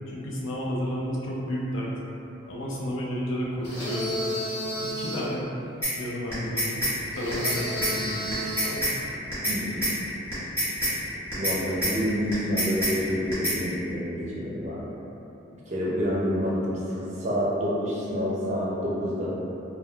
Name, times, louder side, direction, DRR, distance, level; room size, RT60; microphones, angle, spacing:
voice 1, 0.1-1.9 2.5-4.2 4.8-5.5 5.9-6.8 7.2-8.8 15.9-16.2, equal, 80° left, -5 dB, 0.5 m, -32 dB
sound 1, 3.6-5.3 7.1-8.9, equal, 55° left, 1.4 m, -32 dB
sound 2, 5.8-5.9 6.3-6.9 7.3-7.6 7.8-7.9 8.3-8.9 9.3-9.6 9.8-9.9 10.3-10.9 11.3-11.6 11.8-11.9 12.3-12.9 13.3-13.6, equal, 15° left, 1.2 m, -26 dB
voice 2, 9.5-9.9 11.4-14.9 15.7-19.4, equal, 35° right, -7 dB, 0.5 m, -28 dB
3.1 x 2.1 x 2.2 m, 2.9 s
head